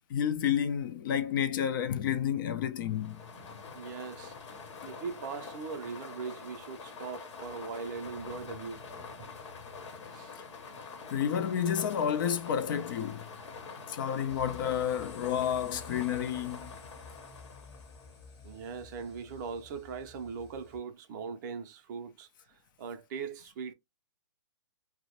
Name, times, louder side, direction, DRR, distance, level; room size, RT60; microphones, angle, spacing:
voice 1, 0.0-3.2 10.4-10.5 11.1-13.3 13.9-16.7, left 9 dB, 45° left, 0.4 m, -30 dB
sound 1, 2.8-18.2, left 4 dB, 70° left, 0.9 m, -46 dB
voice 2, 3.7-4.4 4.8-8.8 10.1-10.3 18.4-23.7, right 5 dB, 40° right, 0.5 m, -40 dB
sound 2, 14.3-20.8, left 4 dB, 25° left, 0.8 m, -51 dB
2.2 x 2.0 x 2.8 m
hypercardioid pair, 140°, 16 cm